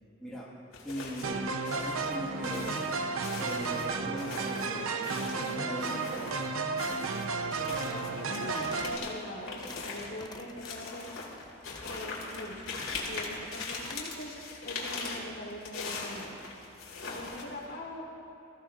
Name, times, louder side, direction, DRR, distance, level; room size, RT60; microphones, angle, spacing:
voice 1, 0.2-0.5 0.8-2.8 3.4-6.4, equal, 5° left, -8 dB, 1.6 m, -40 dB
sound 1, 0.7-1.4 1.7-6.5 6.8-17.7, left 4 dB, 80° left, 2.5 m, -41 dB
sound 2, 1.2-9.0, right 4 dB, 85° right, 0.7 m, -33 dB
voice 2, 7.2-11.1 11.8-14.3 14.6-16.4 17.0-18.0, left 1 dB, 60° left, -4 dB, 3.5 m, -42 dB
sound 3, 7.4-8.0 8.3-9.0 9.4-9.9 10.2-10.7 11.2-12.1 12.5-13.2 13.6-14.0, left 3 dB, 20° left, 0.6 m, -49 dB
20.0 x 15.0 x 2.5 m, 2.8 s
head